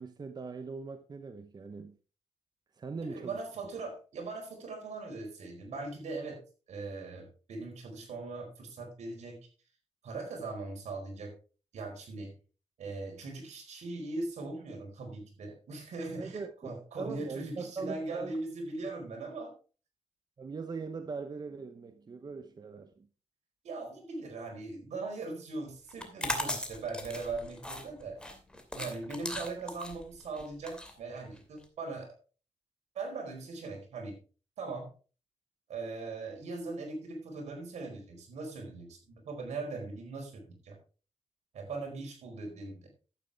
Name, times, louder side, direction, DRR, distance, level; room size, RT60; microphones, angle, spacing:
voice 1, 0.0-2.0 2.8-3.4 16.2-18.4 18.8-18.9 20.4-23.1, right 4 dB, 35° right, 0.9 m, -41 dB
voice 2, 3.0-6.4 6.7-9.4 10.0-11.3 11.7-12.3 12.8-19.5 23.6-28.2 28.7-32.1 32.9-34.2 34.6-34.9 35.7-40.8 41.5-42.9, right 3 dB, 70° right, 4.5 m, -40 dB
sound 1, 25.9-31.6, left 1 dB, 5° left, 2.6 m, -38 dB
12.0 x 8.7 x 3.5 m
cardioid pair, 85°, 12 cm